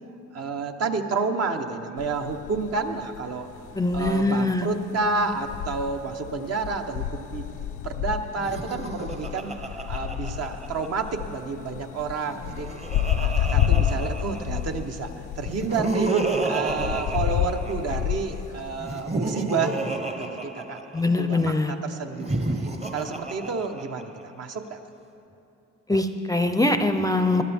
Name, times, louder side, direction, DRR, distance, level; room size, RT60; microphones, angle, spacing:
voice 1, 0.3-3.5 3.9-7.6 7.8-9.6 9.9-12.7 13.2-16.1 16.4-20.8 21.2-24.8, right 4 dB, 55° right, 5 dB, 1.0 m, -30 dB
sound 1, 2.0-19.0, left 10 dB, 85° left, 0.5 m, -30 dB
voice 2, 3.8-4.7 20.9-21.7 25.9-27.4, left 2 dB, 10° left, 8 dB, 0.5 m, -23 dB
Laughter, 8.3-11.1 12.2-14.8 15.4-18.2 18.8-21.2 22.1-24.2, right 3 dB, 20° right, 0.9 m, -31 dB
20.0 x 12.0 x 3.5 m, 2.8 s
cardioid pair, 90°, 30 cm